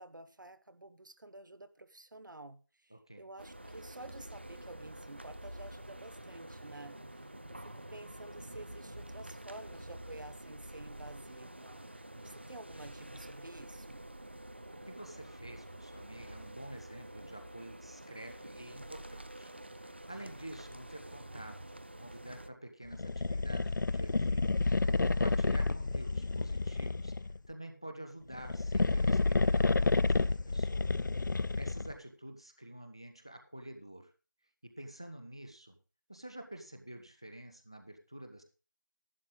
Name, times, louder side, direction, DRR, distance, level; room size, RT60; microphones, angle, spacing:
voice 1, 0.0-7.0 7.5-14.1, right 2 dB, 80° right, 1.0 m, -51 dB
voice 2, 2.9-3.2 12.1-12.4 14.7-24.5 24.9-30.9 31.3-34.1 34.6-35.8 36.1-38.4, right 1 dB, 15° left, 0.5 m, -49 dB
sound 1, 3.4-22.5, right 1 dB, 35° right, 0.5 m, -48 dB
sound 2, 22.9-27.4 28.3-32.0, left 3 dB, 75° left, 0.4 m, -30 dB
11.0 x 9.9 x 3.8 m
figure-of-eight pair, 180°, 10 cm